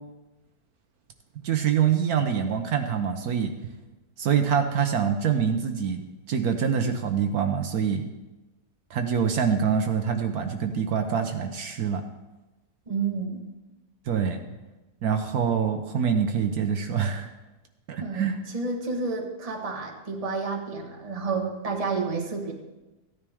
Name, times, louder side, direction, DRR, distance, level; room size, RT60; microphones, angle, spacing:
voice 1, 1.4-3.5 4.2-6.0 6.3-8.0 8.9-12.0 14.1-14.4 15.0-17.3 17.9-18.4, right 7 dB, 70° right, 5 dB, 1.3 m, -25 dB
voice 2, 12.9-13.4 18.0-22.5, right 4 dB, 25° right, 2 dB, 1.2 m, -30 dB
15.5 x 10.0 x 3.5 m, 1.1 s
omnidirectional pair, 1.7 m